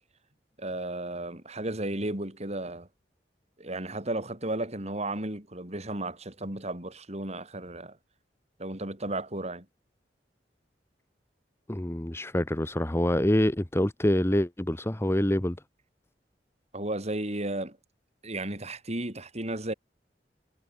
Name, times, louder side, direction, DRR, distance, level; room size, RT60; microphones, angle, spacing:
voice 1, 0.6-2.9 3.6-8.0 8.6-9.6 16.7-17.8 18.2-19.7, right 1 dB, 40° right, 4.9 m, -34 dB
voice 2, 11.7-15.6, left 1 dB, 15° left, 1.1 m, -26 dB
head